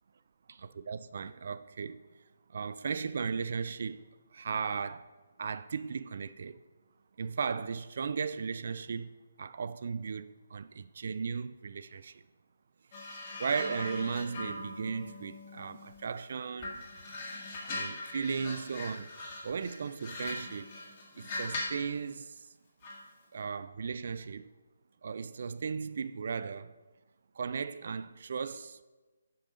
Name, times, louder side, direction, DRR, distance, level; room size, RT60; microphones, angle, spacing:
voice 1, 0.5-2.0 2.5-4.0 4.3-5.1 5.4-6.6 7.2-9.1 9.4-12.2 13.4-16.8 17.7-19.1 19.4-20.7 21.1-22.4 23.3-24.5 25.0-26.7 27.4-28.8, right 5 dB, 50° right, 0.3 m, -36 dB
sound 1, 12.9-16.2 16.6-21.9 22.8-23.1, left 2 dB, 35° left, 1.8 m, -41 dB
7.7 x 5.3 x 5.3 m
figure-of-eight pair, 145°, 0 cm